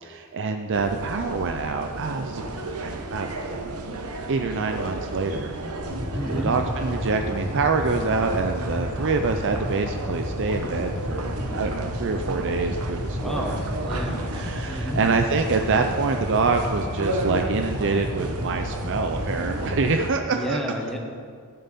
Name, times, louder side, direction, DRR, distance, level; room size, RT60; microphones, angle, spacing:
voice 1, 0.0-2.4 2.8-4.0 4.3-5.5 6.3-13.6 14.3-20.6, right 4 dB, 55° right, 5 dB, 0.6 m, -26 dB
sound 1, 0.7-20.1, right 2 dB, 75° right, 1.0 m, -33 dB
sound 2, 5.8-19.8, left 1 dB, 35° left, 2.4 m, -32 dB
voice 2, 6.1-6.5 13.2-14.2 14.7-15.0 20.3-21.0, equal, ahead, 0 dB, 1.4 m, -31 dB
14.0 x 10.5 x 4.2 m, 2.1 s
head